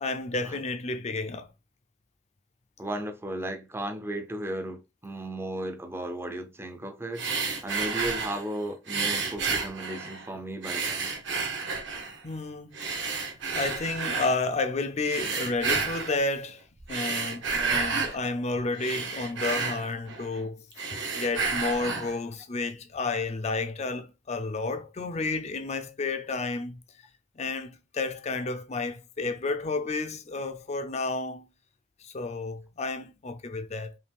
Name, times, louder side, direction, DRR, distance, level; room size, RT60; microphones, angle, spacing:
voice 1, 0.0-1.5 12.2-13.3 13.5-16.6 16.9-26.8 27.4-31.5 32.0-34.0, left 3 dB, 35° left, 0.5 m, -31 dB
voice 2, 2.8-7.3 7.6-11.1 16.1-16.2 17.5-17.8, right 1 dB, 15° right, 0.5 m, -35 dB
sound 1, 7.1-8.5 8.9-10.3 10.6-12.2 12.7-14.3 15.0-16.2 16.8-18.2 18.6-20.4 20.7-22.2, right 4 dB, 65° right, 1.3 m, -31 dB
5.4 x 2.4 x 3.4 m
head